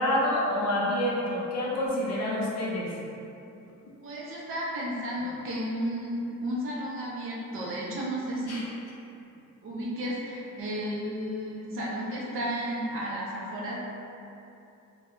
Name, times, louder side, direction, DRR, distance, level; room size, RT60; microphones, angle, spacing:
voice 1, 0.0-2.9 8.5-8.6, left 1 dB, 55° left, -5 dB, 0.6 m, -27 dB
voice 2, 4.0-8.7 9.6-13.8, equal, 45° right, -5 dB, 0.4 m, -33 dB
2.2 x 2.0 x 3.6 m, 2.7 s
cardioid pair, 175°, 31 cm